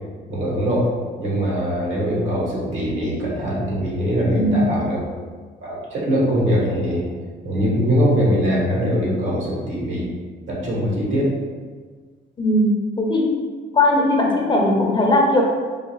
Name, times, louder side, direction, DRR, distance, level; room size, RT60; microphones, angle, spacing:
voice 1, 0.3-0.9 1.2-5.0 5.6-7.0 7.4-10.1 10.5-11.3, equal, 75° right, -4 dB, 1.3 m, -22 dB
voice 2, 4.4-4.7 12.4-13.4 13.7-15.4, left 1 dB, 25° left, 0 dB, 0.6 m, -18 dB
4.6 x 2.3 x 3.1 m, 1.5 s
cardioid pair, 90°, 20 cm